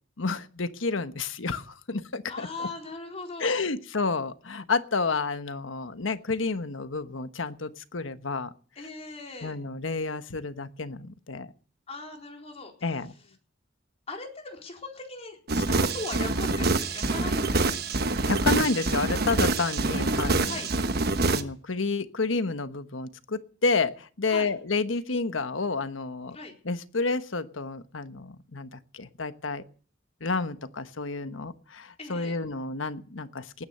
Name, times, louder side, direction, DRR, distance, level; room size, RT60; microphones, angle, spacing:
voice 1, 0.2-2.5 3.4-8.5 9.4-11.5 12.8-13.1 18.3-20.6 21.3-26.4 26.6-29.6 30.2-33.7, left 4 dB, 85° left, 11 dB, 1.2 m, -30 dB
voice 2, 2.3-3.6 8.8-9.6 11.9-12.7 14.1-17.8 20.4-20.7 24.3-24.5 26.3-26.5 32.0-32.4, left 3 dB, 35° left, 2 dB, 4.4 m, -39 dB
sound 1, 15.5-21.4, right 3 dB, 55° right, 1.2 m, -26 dB
19.0 x 9.8 x 6.7 m, 0.43 s
head